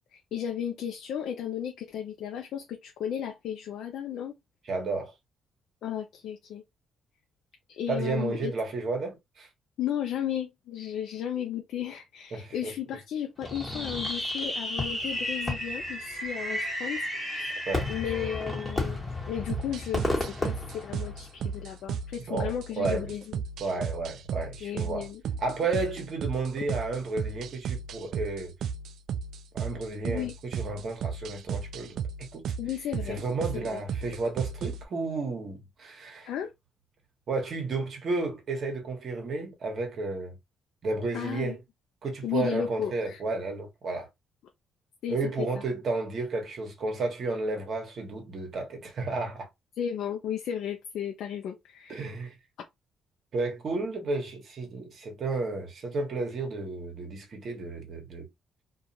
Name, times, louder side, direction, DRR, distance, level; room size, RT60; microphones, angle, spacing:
voice 1, 0.1-4.4 5.8-6.6 7.7-8.5 9.8-17.5 17.9-23.4 23.7-23.8 24.6-25.2 30.0-30.3 32.6-33.2 33.5-33.8 36.2-36.5 41.1-41.6 42.2-43.2 45.0-45.6 49.8-52.1, left 9 dB, 75° left, 0.4 m, -34 dB
voice 2, 4.7-5.1 7.9-9.5 12.3-12.7 17.7-17.9 22.3-23.1 23.6-25.1 25.4-28.5 29.5-32.0 32.3-32.4 33.1-36.3 37.3-40.4 40.8-41.6 42.0-44.1 45.1-49.5 51.9-52.4 53.3-58.3, right 3 dB, 55° right, 1.0 m, -32 dB
Fireworks, 13.4-21.5, left 1 dB, 10° left, 1.2 m, -32 dB
sound 1, 19.5-34.9, right 6 dB, 75° right, 0.3 m, -35 dB
2.4 x 2.3 x 2.7 m
cardioid pair, 90°, 0 cm